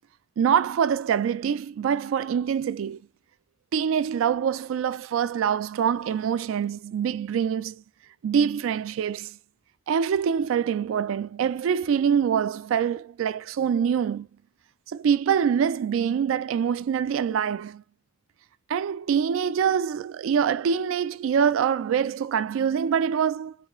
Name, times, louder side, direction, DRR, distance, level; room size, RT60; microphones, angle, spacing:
voice 1, 0.4-3.0 3.7-7.8 8.2-9.4 9.9-14.3 14.9-17.8 18.7-23.6, right 7 dB, 85° right, 0.3 m, -25 dB
3.3 x 3.1 x 3.0 m
head